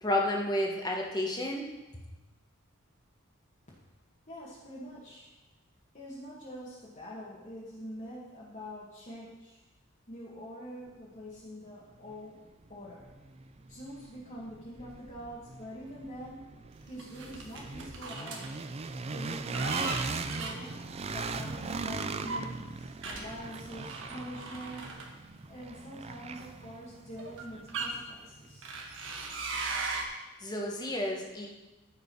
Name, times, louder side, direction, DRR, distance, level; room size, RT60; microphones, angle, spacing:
voice 1, 0.0-1.7 30.4-31.5, left 1 dB, 20° left, -1 dB, 1.5 m, -31 dB
voice 2, 4.3-5.3 5.9-9.6 10.1-12.4 12.7-13.1 13.7-16.4 16.9-18.5 19.1-20.8 21.1-24.9 25.4-28.7, equal, 35° left, -7 dB, 1.9 m, -45 dB
sound 1, 12.1-12.2 12.7-28.6, right 4 dB, 30° right, 0.5 m, -40 dB
sound 2, 17.0-18.5 19.2-21.7 22.2-25.5 26.4-26.5 27.2-27.9 28.6-30.0, right 3 dB, 65° right, 1.4 m, -39 dB
15.0 x 5.2 x 4.7 m, 1.1 s
head